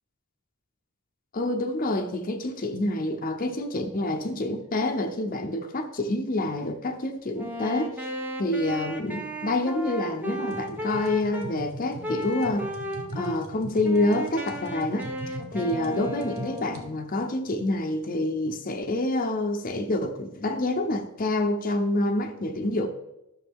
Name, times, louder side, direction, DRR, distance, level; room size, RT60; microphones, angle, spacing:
voice 1, 1.3-8.1 8.4-12.7 13.1-22.9, left 1 dB, 40° left, 0.7 m, -27 dB
Wind instrument woodwind instrument, 7.3-11.5 12.0-13.4 13.8-17.0, left 1 dB, 10° right, 1.0 m, -35 dB
sound 1, 10.5-16.8, right 2 dB, 85° right, 1.4 m, -41 dB
12.5 x 6.4 x 3.6 m
head